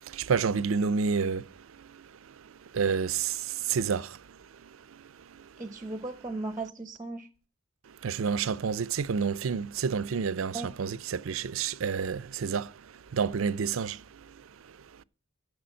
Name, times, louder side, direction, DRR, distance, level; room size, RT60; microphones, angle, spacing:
voice 1, 0.0-5.6 7.9-15.0, right 6 dB, 90° right, 0.5 m, -31 dB
voice 2, 5.6-7.3 10.5-10.7, right 3 dB, 15° right, 0.7 m, -36 dB
8.2 x 6.9 x 7.4 m
head